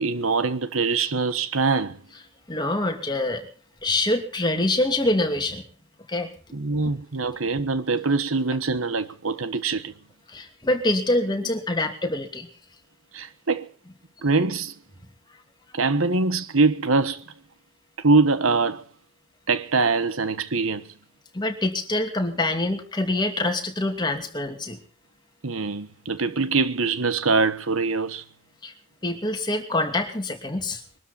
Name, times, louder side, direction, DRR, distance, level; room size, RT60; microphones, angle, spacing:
voice 1, 0.0-2.0 6.5-9.9 13.1-13.7 14.2-14.7 15.7-17.2 18.0-18.8 19.5-20.8 25.4-28.2, right 3 dB, 90° right, 1.3 m, -23 dB
voice 2, 2.5-3.5 3.8-5.6 6.1-6.3 10.3-12.5 21.3-24.8 28.6-28.7 29.0-30.8, left 2 dB, 20° left, 2.8 m, -25 dB
23.0 x 12.5 x 4.4 m
head